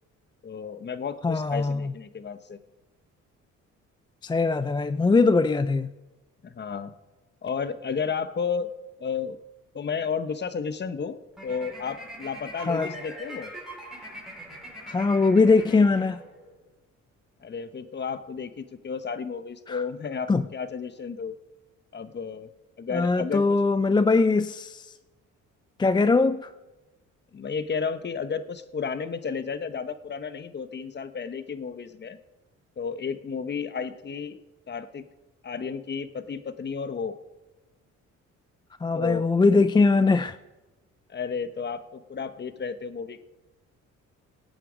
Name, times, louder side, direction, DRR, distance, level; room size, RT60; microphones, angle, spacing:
voice 1, 0.4-2.6 6.4-6.9 7.4-8.7 9.0-9.4 9.7-11.2 11.4-13.5 17.4-21.4 21.9-22.5 22.8-23.6 27.3-32.2 32.8-34.4 34.7-35.0 35.4-37.2 38.9-39.3 41.1-43.2, left 6 dB, 35° left, 0.9 m, -32 dB
voice 2, 1.2-1.9 4.2-5.9 12.6-12.9 14.9-16.2 19.7-19.8 20.3-20.4 22.9-24.9 25.8-26.5 38.8-40.4, left 3 dB, 15° left, 0.4 m, -21 dB
sound 1, 11.3-16.6, right 1 dB, ahead, 5.2 m, -42 dB
17.0 x 9.0 x 5.0 m
cardioid pair, 90°, 30 cm